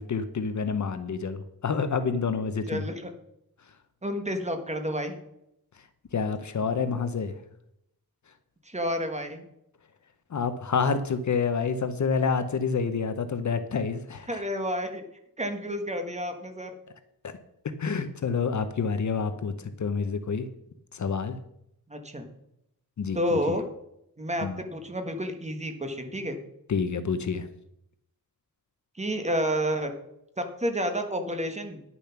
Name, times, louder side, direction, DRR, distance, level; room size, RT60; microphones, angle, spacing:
voice 1, 0.0-2.9 6.1-7.3 10.3-14.4 17.2-17.3 17.8-20.5 20.9-21.4 23.0-23.4 24.4-24.6 26.7-27.5, left 5 dB, 50° left, 11 dB, 0.7 m, -28 dB
voice 2, 2.7-3.1 4.0-5.2 8.6-9.4 14.3-15.0 15.4-16.7 21.9-22.3 23.1-23.6 24.2-26.4 29.0-29.9 30.4-31.8, equal, 20° right, 6 dB, 1.3 m, -30 dB
10.0 x 7.0 x 5.8 m, 0.78 s
wide cardioid pair, 150°, 37 cm